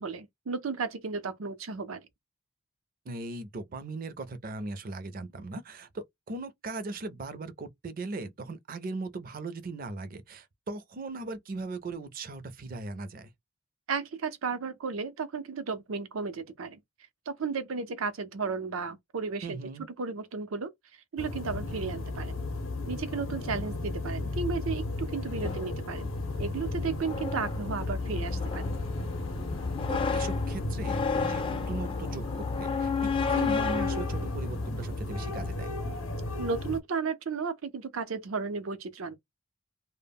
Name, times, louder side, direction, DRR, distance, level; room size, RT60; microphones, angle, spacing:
voice 1, 0.0-2.1 13.9-16.8 17.3-19.6 20.0-20.7 21.1-22.4 22.9-26.1 26.4-28.6 36.4-39.2, right 4 dB, 90° right, 0.6 m, -34 dB
voice 2, 3.1-13.3 19.4-19.9 29.9-32.9 33.3-35.7, right 3 dB, 45° right, 0.4 m, -38 dB
sound 1, 21.2-36.8, left 2 dB, 75° left, 0.6 m, -34 dB
sound 2, 25.4-35.3, left 5 dB, 25° left, 0.3 m, -33 dB
2.1 x 2.1 x 3.4 m
head